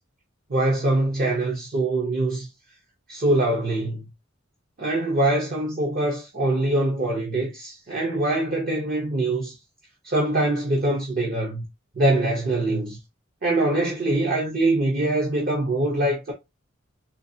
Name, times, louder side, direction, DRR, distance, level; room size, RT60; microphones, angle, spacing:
voice 1, 0.5-2.5 3.1-4.1 4.8-9.6 10.0-11.6 12.0-13.0 13.4-16.3, right 2 dB, 45° right, 0.8 m, -23 dB
3.9 x 2.4 x 2.7 m
head